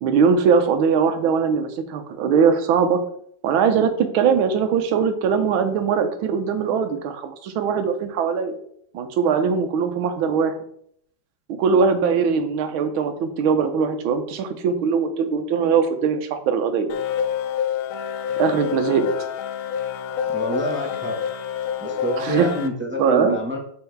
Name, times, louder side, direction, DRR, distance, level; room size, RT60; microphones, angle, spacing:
voice 1, 0.0-3.0 3.4-8.6 8.9-10.5 11.5-16.9 18.4-19.1 22.2-22.5 23.0-23.4, right 6 dB, 85° right, 7 dB, 1.6 m, -21 dB
sound 1, 16.9-22.7, left 9 dB, 85° left, 1.4 m, -27 dB
voice 2, 20.3-21.2 21.8-23.6, equal, 10° right, 0 dB, 0.5 m, -27 dB
5.6 x 4.4 x 4.5 m, 0.66 s
omnidirectional pair, 2.2 m